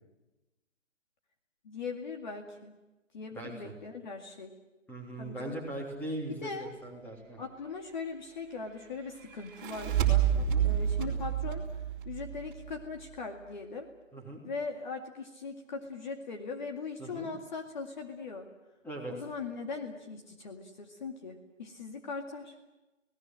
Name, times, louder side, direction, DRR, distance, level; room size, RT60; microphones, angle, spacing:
voice 1, 1.6-2.8 3.1-4.5 5.2-5.6 6.4-6.7 7.4-10.3 10.6-11.6 12.1-13.9 14.4-18.5 19.1-22.5, left 4 dB, 40° left, 3 dB, 2.2 m, -40 dB
voice 2, 3.3-3.7 4.9-7.4 10.4-10.6 11.0-11.1 14.1-14.4 17.0-17.3 18.8-19.1, right 1 dB, 5° left, 0 dB, 3.3 m, -40 dB
sound 1, 9.4-12.7, right 9 dB, 15° right, 3.8 m, -29 dB
30.0 x 18.0 x 7.7 m, 1.1 s
figure-of-eight pair, 150°, 37 cm